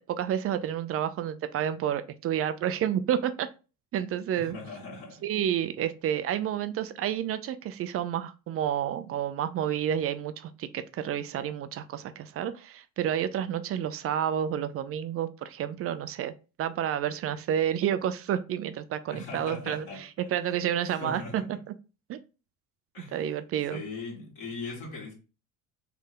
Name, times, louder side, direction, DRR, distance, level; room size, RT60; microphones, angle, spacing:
voice 1, 0.1-3.5 3.9-4.6 5.2-16.3 16.6-21.4 22.1-22.2 23.1-23.8, right 10 dB, 30° right, 0.4 m, -30 dB
voice 2, 4.3-5.2 19.1-20.3 20.8-21.6 22.9-23.3 23.7-25.1, left 3 dB, 55° left, 1.8 m, -40 dB
3.3 x 2.7 x 3.5 m
hypercardioid pair, 65°, 47 cm